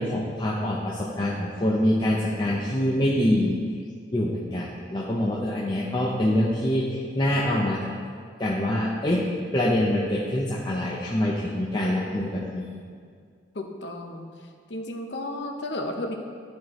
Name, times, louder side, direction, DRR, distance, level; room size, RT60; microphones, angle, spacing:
voice 1, 0.0-3.6 4.1-7.9 8.4-9.2 9.5-12.6, left 1 dB, 25° left, -5 dB, 0.7 m, -25 dB
voice 2, 13.5-14.3 14.7-16.1, left 1 dB, 70° left, 3 dB, 0.8 m, -33 dB
12.5 x 4.6 x 3.1 m, 2.1 s
head